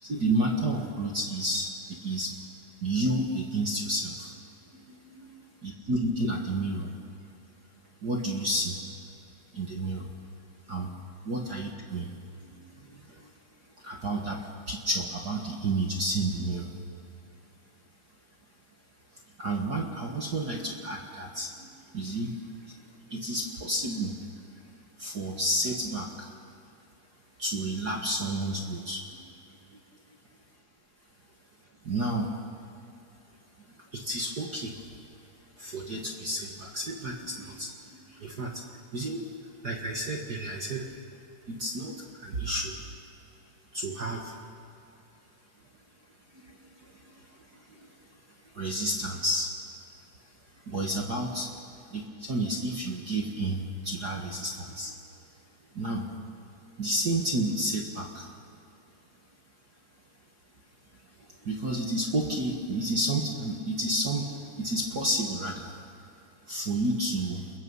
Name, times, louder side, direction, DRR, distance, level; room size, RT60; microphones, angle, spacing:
voice 1, 0.0-2.3 2.8-4.3 4.7-5.3 5.6-6.9 8.0-8.8 9.5-10.1 10.7-10.9 11.2-12.1 12.4-13.3 13.8-16.7 19.4-22.3 22.6-22.7 23.1-24.1 25.0-26.3 27.4-29.0 31.8-32.3 33.9-34.8 35.6-38.6 38.9-39.3 39.6-40.9 41.5-42.8 43.7-44.4 46.4-47.3 47.5-47.9 48.5-49.5 50.7-51.5 51.9-54.9 55.7-56.1 56.8-58.3 61.2-65.8 66.5-67.4, right 1 dB, 40° right, 0 dB, 1.6 m, -31 dB
29.5 x 22.0 x 5.6 m, 2.6 s
omnidirectional pair, 3.7 m